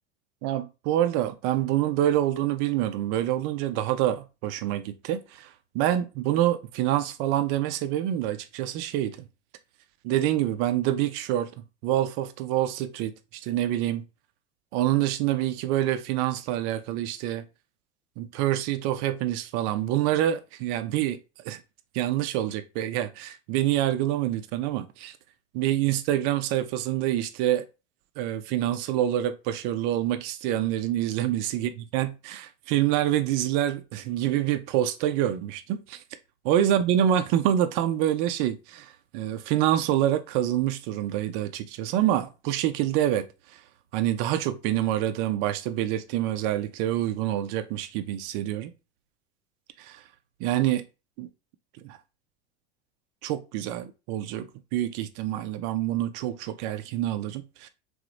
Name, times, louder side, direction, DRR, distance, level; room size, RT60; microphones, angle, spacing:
voice 1, 0.4-9.2 10.0-11.5 11.8-14.0 14.7-17.4 18.2-21.2 21.4-21.6 21.9-25.1 25.5-27.7 28.2-36.0 36.4-43.3 43.5-43.6 43.9-48.7 49.8-50.0 50.4-50.8 51.2-51.3 51.8-52.0 53.2-57.7, right 12 dB, 45° right, 0.4 m, -26 dB
2.9 x 2.0 x 2.4 m
hypercardioid pair, 85°, 34 cm